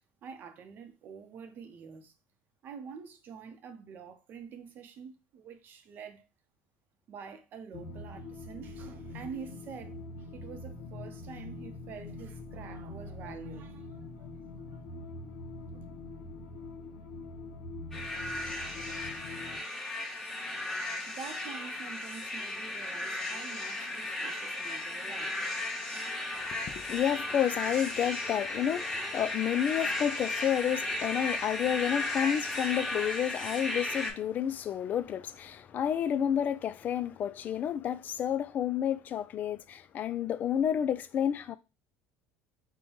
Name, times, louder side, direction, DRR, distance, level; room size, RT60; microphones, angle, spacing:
voice 1, 0.2-2.1 2.6-6.3 7.1-14.3 15.7-15.8 20.1-20.2 20.7-25.3, right 6 dB, 45° right, 0.7 m, -47 dB
sound 1, 7.7-19.6, left 2 dB, 80° left, 0.9 m, -44 dB
sound 2, 17.9-34.1, left 2 dB, 10° left, 0.9 m, -35 dB
voice 2, 26.4-41.5, left 9 dB, 40° left, 0.3 m, -30 dB
5.4 x 2.2 x 2.9 m
cardioid pair, 125°, 5 cm